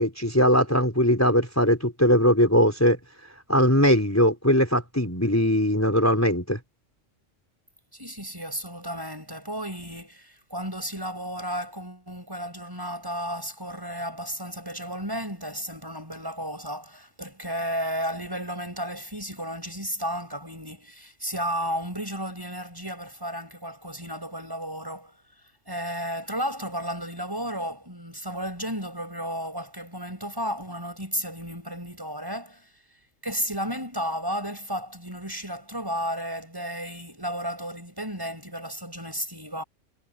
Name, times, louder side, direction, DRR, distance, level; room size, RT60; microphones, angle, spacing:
voice 1, 0.0-3.0 3.5-6.6, equal, 10° left, 4.8 m, -20 dB
voice 2, 7.9-25.1 25.7-32.7 33.2-39.6, equal, 15° right, 7.0 m, -33 dB
omnidirectional pair, 1.3 m